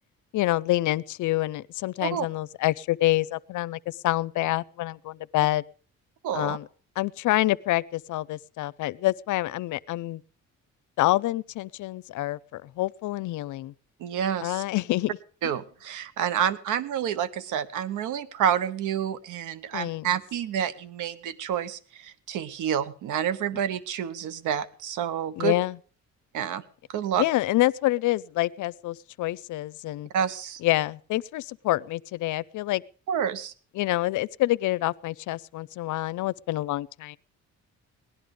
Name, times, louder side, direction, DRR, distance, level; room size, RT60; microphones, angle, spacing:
voice 1, 0.3-5.6 6.3-6.7 7.0-10.2 11.0-13.7 14.4-15.1 19.7-20.1 25.4-25.8 27.2-30.1 30.6-32.8 33.8-37.2, left 16 dB, 80° left, 0.6 m, -27 dB
voice 2, 6.2-6.6 14.0-14.6 15.4-25.5 26.3-26.6 26.9-27.2 30.1-30.6 33.1-33.5, right 9 dB, 85° right, 1.0 m, -29 dB
18.5 x 11.5 x 5.2 m
cardioid pair, 90°, 30 cm